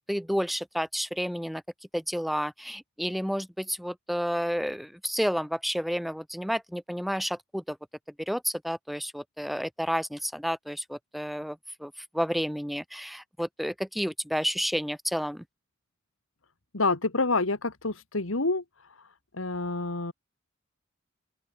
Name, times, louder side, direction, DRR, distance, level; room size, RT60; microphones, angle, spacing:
voice 1, 0.0-1.6 1.9-7.8 8.2-15.4, equal, ahead, 5.7 m, -31 dB
voice 2, 16.7-18.6 19.3-20.1, left 3 dB, 75° left, 2.2 m, -27 dB
open air
head